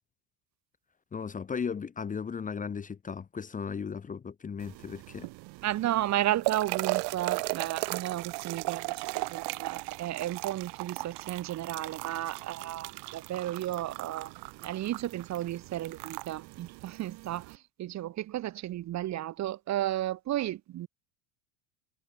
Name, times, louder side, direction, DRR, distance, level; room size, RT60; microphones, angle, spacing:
voice 1, 1.1-5.3, left 6 dB, 15° left, 1.2 m, -36 dB
sound 1, 4.6-17.6, right 25 dB, 55° right, 3.0 m, -37 dB
voice 2, 5.6-14.3 14.6-20.9, right 13 dB, 35° right, 1.4 m, -33 dB
cardioid pair, 145°, 47 cm